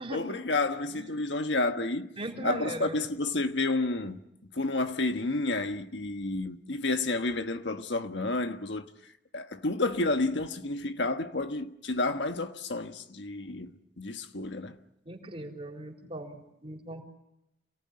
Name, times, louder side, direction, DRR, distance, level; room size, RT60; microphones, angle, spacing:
voice 1, 0.0-2.1 2.4-4.2 4.5-8.9 9.3-13.7 14.0-14.8, left 2 dB, 70° left, 1.4 m, -30 dB
voice 2, 0.8-1.2 2.2-3.0 15.1-17.0, right 1 dB, 30° right, 4.0 m, -38 dB
28.0 x 18.5 x 9.7 m
head